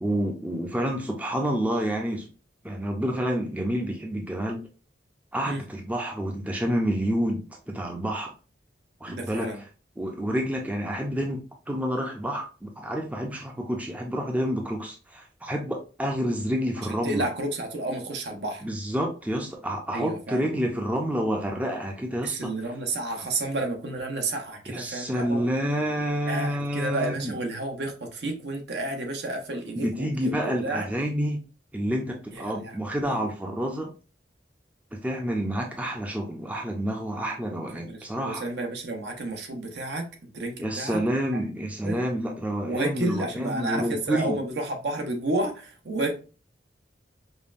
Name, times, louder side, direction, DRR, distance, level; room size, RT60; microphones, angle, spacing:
voice 1, 0.0-2.3 2.6-4.7 5.3-8.3 9.0-9.5 10.0-17.3 18.6-22.5 24.7-27.4 29.8-31.4 31.7-33.9 34.9-38.4 40.6-44.4, equal, 10° right, 0.5 m, -29 dB
voice 2, 9.1-9.6 16.8-18.6 19.9-20.4 22.2-25.4 26.3-30.9 32.3-32.8 33.1-33.2 37.7-40.1 40.3-41.0 41.3-41.4 41.8-42.0 42.6-46.2, right 2 dB, 65° right, 0.8 m, -31 dB
5.2 x 2.2 x 2.5 m
head